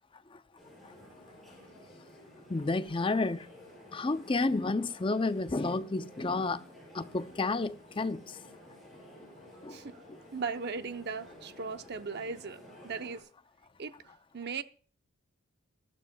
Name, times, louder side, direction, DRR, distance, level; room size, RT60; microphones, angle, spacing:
sound 1, 0.6-13.2, left 1 dB, ahead, 6.1 m, -53 dB
voice 1, 2.5-3.5 3.9-6.6 6.9-8.4 9.6-9.8 10.1-10.2, left 3 dB, 20° left, 0.4 m, -31 dB
voice 2, 10.3-13.2 13.8-13.9 14.3-14.6, right 5 dB, 45° right, 0.7 m, -37 dB
21.0 x 12.5 x 2.3 m
head